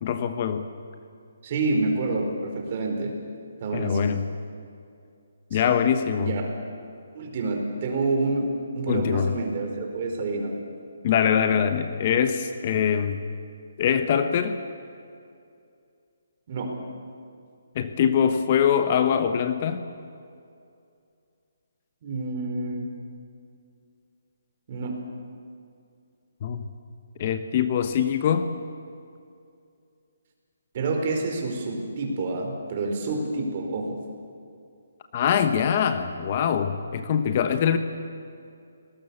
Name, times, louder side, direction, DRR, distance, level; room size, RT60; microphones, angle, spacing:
voice 1, 0.0-0.7 3.7-4.2 5.5-6.3 8.9-9.3 11.0-13.2 13.8-14.6 17.7-19.8 26.4-26.6 27.2-28.5 35.1-37.8, left 8 dB, 35° left, 9 dB, 1.2 m, -23 dB
voice 2, 1.4-3.1 3.6-4.1 5.5-5.8 6.2-6.4 7.1-8.5 8.7-10.5 16.5-16.8 22.0-22.9 24.7-25.1 30.7-34.0, right 3 dB, 40° right, 2 dB, 4.9 m, -28 dB
29.0 x 19.5 x 7.3 m, 2.4 s
hypercardioid pair, 165°, 0 cm